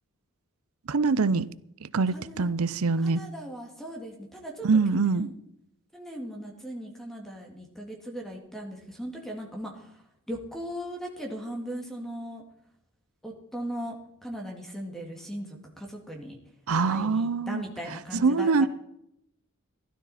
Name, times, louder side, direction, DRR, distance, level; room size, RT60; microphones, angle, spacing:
voice 1, 0.9-1.5 1.8-3.2 4.6-5.3 16.7-17.6 18.1-18.6, right 4 dB, 85° right, 0.6 m, -24 dB
voice 2, 2.1-2.5 3.0-4.7 5.1-5.3 5.9-10.0 10.3-12.4 13.2-14.0 14.2-16.4 16.9-18.7, equal, ahead, 2.1 m, -38 dB
16.0 x 12.5 x 4.2 m
head